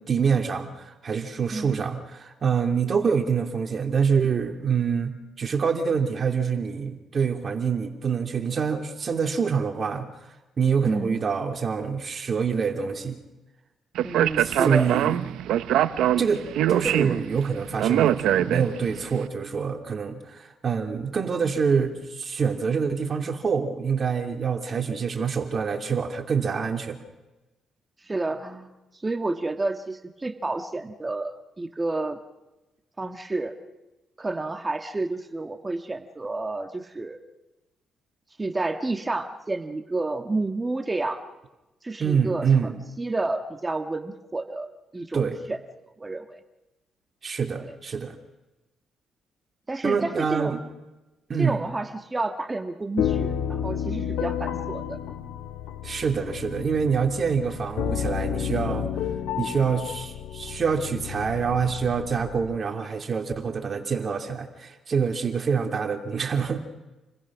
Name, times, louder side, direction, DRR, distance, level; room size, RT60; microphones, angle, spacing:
voice 1, 0.0-10.1 10.6-13.2 14.4-15.4 16.2-16.4 16.7-27.0 42.0-42.8 45.1-45.4 47.2-48.1 49.8-50.6 51.3-51.6 55.8-58.9 59.4-66.6, right 6 dB, 45° right, 5 dB, 2.8 m, -26 dB
voice 2, 10.8-11.2 14.0-14.9 16.8-17.0 28.0-28.7 29.0-32.2 33.0-33.5 34.2-37.2 38.4-41.2 41.8-42.7 43.0-45.6 46.0-46.4 47.6-47.7 49.7-50.6 51.4-55.0, right 2 dB, 20° right, 7 dB, 1.7 m, -30 dB
Speech, 14.0-19.0, right 12 dB, 85° right, 0.8 m, -23 dB
sound 1, 53.0-62.6, left 9 dB, 90° left, 1.6 m, -31 dB
29.0 x 21.0 x 6.3 m, 1.0 s
cardioid pair, 90°, 0 cm